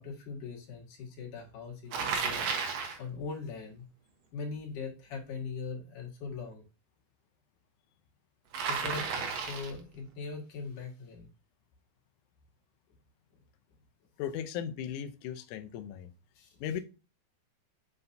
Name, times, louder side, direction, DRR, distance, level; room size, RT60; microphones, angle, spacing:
voice 1, 0.0-2.5 3.0-3.9 4.3-6.6 8.7-11.3 16.4-16.6, left 4 dB, 60° left, -1 dB, 3.2 m, -41 dB
Bicycle, 1.9-3.0 8.5-9.8, right 5 dB, 65° right, 1.7 m, -33 dB
voice 2, 14.2-16.1 16.6-16.8, left 9 dB, 90° left, 8 dB, 1.7 m, -37 dB
7.9 x 5.5 x 2.7 m, 0.32 s
omnidirectional pair, 4.3 m